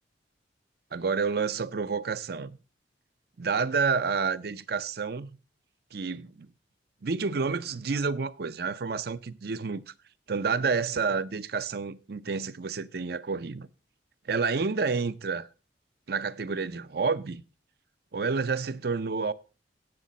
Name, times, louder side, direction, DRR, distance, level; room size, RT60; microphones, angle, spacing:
voice 1, 0.9-2.6 3.4-5.3 5.9-6.5 7.0-9.8 10.3-13.7 14.3-15.5 16.1-17.4 18.1-19.3, right 5 dB, 60° right, 0.6 m, -29 dB
16.5 x 6.6 x 4.1 m
head